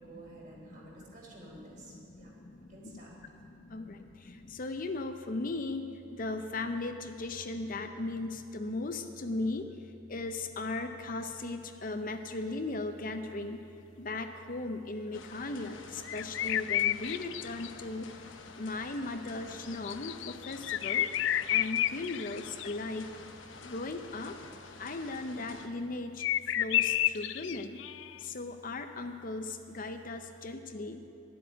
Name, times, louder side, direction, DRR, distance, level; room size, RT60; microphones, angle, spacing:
voice 1, 0.0-2.3 2.7-3.2, right 2 dB, 45° right, -3 dB, 3.6 m, -51 dB
voice 2, 1.4-9.7 10.1-13.6 14.0-18.1 18.6-21.1 21.5-23.1 23.6-24.4 24.8-26.3 26.5-27.8 28.2-31.0, left 2 dB, 45° left, 7 dB, 0.7 m, -37 dB
sound 1, 15.1-25.7, left 4 dB, 85° left, 1.0 m, -50 dB
sound 2, 16.0-17.7 19.6-23.0 26.2-28.2, left 12 dB, 70° left, 0.3 m, -31 dB
12.0 x 7.8 x 9.9 m, 2.6 s
head